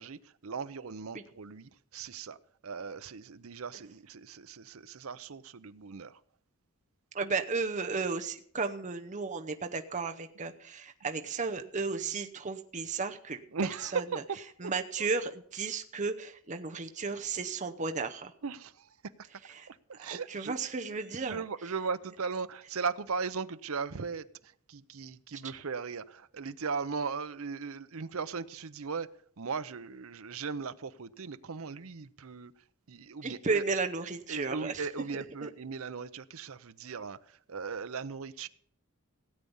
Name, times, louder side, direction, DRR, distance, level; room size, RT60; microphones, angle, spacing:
voice 1, 0.0-2.4 2.6-6.2 13.5-14.7 15.0-15.1 18.4-18.9 19.7-20.6 21.1-29.1 29.4-32.5 32.9-33.6 34.3-38.5, right 5 dB, 70° right, 13 dB, 0.7 m, -38 dB
voice 2, 7.1-13.4 13.8-14.0 14.6-18.3 19.5-19.7 20.0-21.4 33.2-34.9 35.4-35.5, right 4 dB, 35° right, 6 dB, 0.8 m, -34 dB
16.5 x 8.6 x 5.5 m, 0.62 s
head